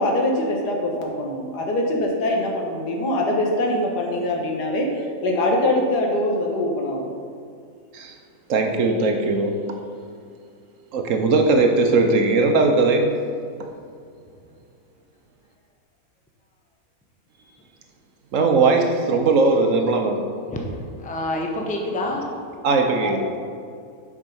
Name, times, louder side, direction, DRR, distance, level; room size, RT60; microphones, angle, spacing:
voice 1, 0.0-4.9 5.2-7.0, left 1 dB, 90° left, 0 dB, 1.7 m, -23 dB
voice 2, 8.5-9.8 10.9-13.1 18.3-20.2 22.6-23.3, right 3 dB, 65° right, 4 dB, 1.0 m, -19 dB
voice 3, 20.5-22.4 23.0-23.4, left 1 dB, 10° left, 0 dB, 0.4 m, -28 dB
7.3 x 4.8 x 5.4 m, 2.3 s
omnidirectional pair, 1.7 m